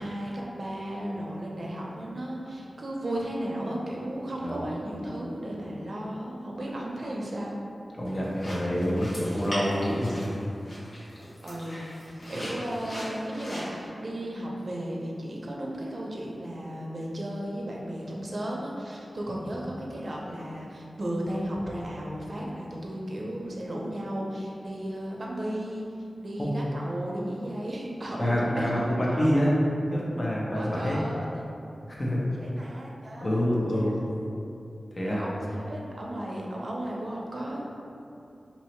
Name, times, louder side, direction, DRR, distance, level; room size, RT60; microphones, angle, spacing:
voice 1, 0.0-7.6 11.4-25.9 26.2-29.5 30.5-31.5 32.3-34.0 35.1-37.6, right 1 dB, 55° right, -3 dB, 0.6 m, -35 dB
voice 2, 7.9-10.3 11.7-11.9 26.4-26.5 28.2-29.6 29.9-31.0 31.9-32.2 33.2-33.9 34.9-35.2, equal, 35° left, -5 dB, 0.8 m, -27 dB
sound 1, 8.0-13.9, equal, 85° left, 1.1 m, -40 dB
2.9 x 2.7 x 4.4 m, 2.6 s
wide cardioid pair, 105°, 0 cm